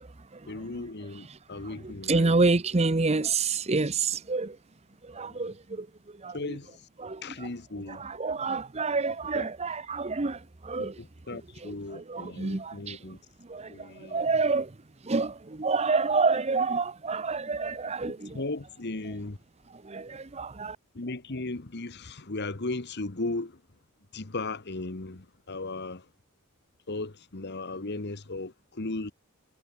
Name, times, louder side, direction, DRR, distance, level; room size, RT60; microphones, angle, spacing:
voice 1, 0.4-2.4 5.1-5.5 6.3-6.9 7.2-8.0 9.3-9.5 10.8-13.2 13.7-14.3 18.2-19.4 20.9-23.6 24.1-26.1 26.9-29.1, left 2 dB, 50° left, 1.3 m, -36 dB
voice 2, 1.8-4.6 5.1-5.9 6.2-6.4 7.0-7.2 7.9-10.9 11.6-13.0 13.5-14.7 15.0-18.4 19.8-20.8, right 3 dB, 30° right, 0.8 m, -28 dB
head